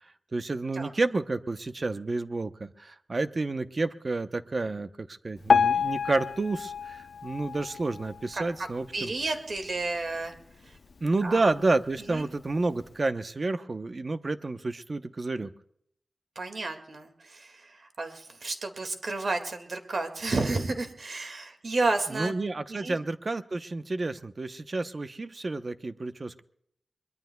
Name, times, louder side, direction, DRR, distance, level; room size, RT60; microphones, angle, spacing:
voice 1, 0.0-9.1 11.0-15.5 22.1-26.4, right 3 dB, 45° right, 10 dB, 0.8 m, -30 dB
Piano, 5.5-8.6 9.1-9.3 9.6-9.7 10.4-10.5 11.0-11.1, left 6 dB, 70° left, 0.6 m, -27 dB
voice 2, 8.9-10.3 11.2-11.5 12.1-12.2 16.4-22.3 22.7-23.0, right 3 dB, 65° right, 5 dB, 2.0 m, -31 dB
22.5 x 22.5 x 2.3 m, 0.70 s
wide cardioid pair, 75°, 0 cm